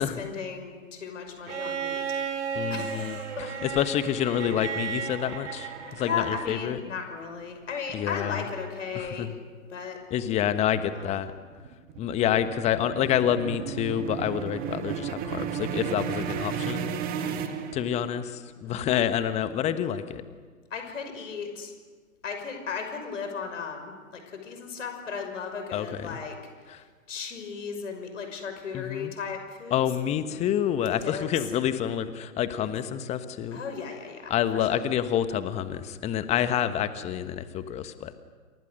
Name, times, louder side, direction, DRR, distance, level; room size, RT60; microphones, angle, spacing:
voice 1, 0.0-2.0 2.7-3.5 6.0-9.3 9.7-10.0 10.9-11.2 17.2-17.6 18.6-19.3 20.7-21.7 22.2-26.4 27.1-29.8 30.3-30.5 31.0-31.3 32.6-32.7 33.5-34.7 36.3-36.5, left 6 dB, 60° left, 5 dB, 6.0 m, -36 dB
Bowed string instrument, 1.5-6.5 8.0-8.1, right 7 dB, 55° right, 3.6 m, -34 dB
voice 2, 2.5-6.8 7.9-8.4 8.9-9.3 10.1-11.3 12.0-16.9 17.7-20.2 25.7-26.2 26.7-26.8 28.7-29.1 29.7-33.6 34.3-38.1, left 10 dB, 15° left, 11 dB, 1.3 m, -28 dB
sound 1, 11.3-18.3, right 7 dB, 20° right, 1.9 m, -33 dB
28.5 x 27.5 x 6.6 m, 1.5 s
figure-of-eight pair, 125°, 42 cm